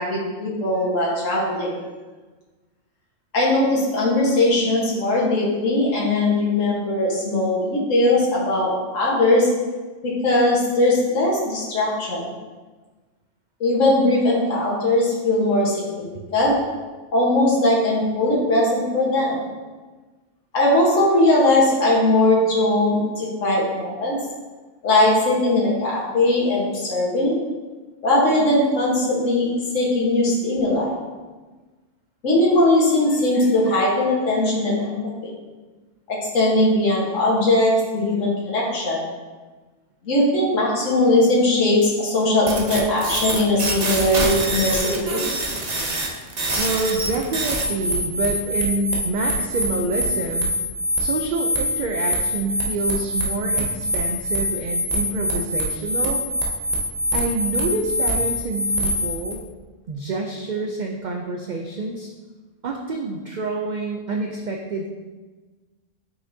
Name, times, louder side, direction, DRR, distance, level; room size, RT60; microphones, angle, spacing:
voice 1, 0.0-1.7 3.3-9.5 10.0-12.3 13.6-16.1 16.3-16.5 17.1-19.4 20.5-24.2 24.8-27.4 28.0-31.0 32.2-35.0 35.2-35.3 36.1-39.1 40.0-45.3, left 1 dB, 75° left, -6 dB, 1.7 m, -20 dB
sound 1, 42.5-59.3, equal, 35° right, 0.8 m, -25 dB
voice 2, 46.6-50.5 51.0-56.2 57.1-59.5 59.9-62.1 62.6-64.9, right 2 dB, 65° right, 2 dB, 0.4 m, -27 dB
6.1 x 5.8 x 2.7 m, 1.3 s
omnidirectional pair, 1.3 m